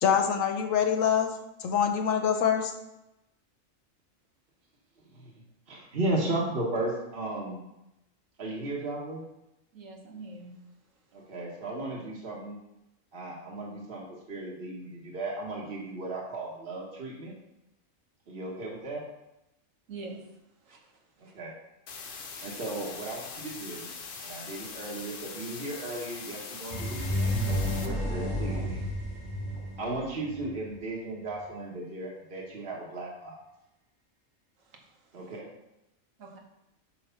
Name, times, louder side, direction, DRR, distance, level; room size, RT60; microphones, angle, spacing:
voice 1, 0.0-1.3 1.6-2.7, left 8 dB, 75° left, 6 dB, 1.2 m, -25 dB
voice 2, 5.7-7.6 8.4-9.2 11.1-12.6 13.1-17.3 18.3-19.0 21.2-21.5 22.4-23.9 24.2-28.8 29.8-33.4 35.1-35.5, right 2 dB, 45° right, -3 dB, 1.4 m, -35 dB
voice 3, 9.7-10.5 19.9-20.2 20.7-20.8 36.2-36.4, right 3 dB, 70° right, 1 dB, 1.6 m, -43 dB
sound 1, 21.9-27.9, left 5 dB, 50° left, 0.8 m, -42 dB
sound 2, 26.7-30.6, equal, 20° left, 1.5 m, -31 dB
8.7 x 3.2 x 5.6 m, 0.90 s
omnidirectional pair, 1.4 m